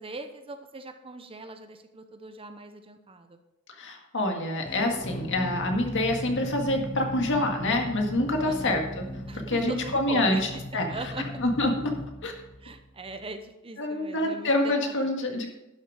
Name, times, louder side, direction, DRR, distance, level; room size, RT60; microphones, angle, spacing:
voice 1, 0.0-3.4 8.4-8.8 9.3-10.4 10.9-11.2 12.6-15.2, right 2 dB, 25° right, 7 dB, 0.8 m, -40 dB
voice 2, 3.7-9.0 9.3-11.9 12.2-12.3 13.8-15.5, left 1 dB, 60° left, 3 dB, 1.9 m, -27 dB
sound 1, 4.7-13.3, left 1 dB, 25° left, 0.9 m, -38 dB
11.5 x 7.2 x 5.0 m, 0.94 s
head